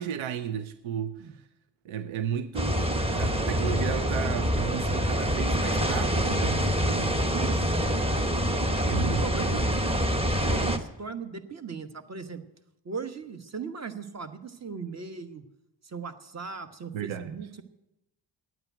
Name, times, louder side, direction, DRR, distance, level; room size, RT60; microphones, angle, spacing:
voice 1, 0.0-1.5 1.8-7.2 8.9-9.7 16.9-17.3, right 8 dB, 85° right, 0.8 m, -34 dB
sound 1, 2.5-10.8, equal, 10° right, 1.0 m, -26 dB
voice 2, 7.3-7.8 8.8-9.6 10.3-12.4 12.8-15.4 15.8-17.6, right 5 dB, 35° right, 1.2 m, -38 dB
9.2 x 8.8 x 9.2 m
cardioid pair, 85°, 47 cm